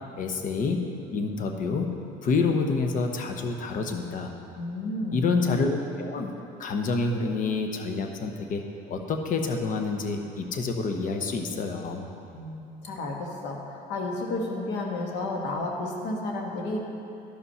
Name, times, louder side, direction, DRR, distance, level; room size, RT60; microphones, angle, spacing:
voice 1, 0.2-1.9 2.2-4.3 5.1-6.3 6.6-12.0, left 4 dB, 50° left, 4 dB, 1.0 m, -28 dB
voice 2, 4.6-5.3 12.3-16.8, left 2 dB, 85° left, 0 dB, 1.5 m, -32 dB
12.0 x 5.6 x 5.6 m, 2.8 s
cardioid pair, 110°, 17 cm